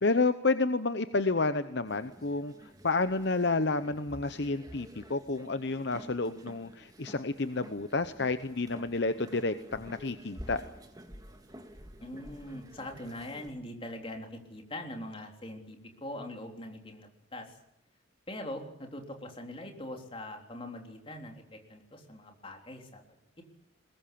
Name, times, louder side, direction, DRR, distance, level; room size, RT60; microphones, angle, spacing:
voice 1, 0.0-10.6, left 3 dB, 55° left, 11 dB, 0.8 m, -30 dB
sound 1, 1.9-13.5, equal, 20° right, 2.1 m, -50 dB
voice 2, 12.0-17.6 18.3-23.0, left 1 dB, 25° left, 3 dB, 3.6 m, -42 dB
21.5 x 21.0 x 8.6 m, 0.81 s
head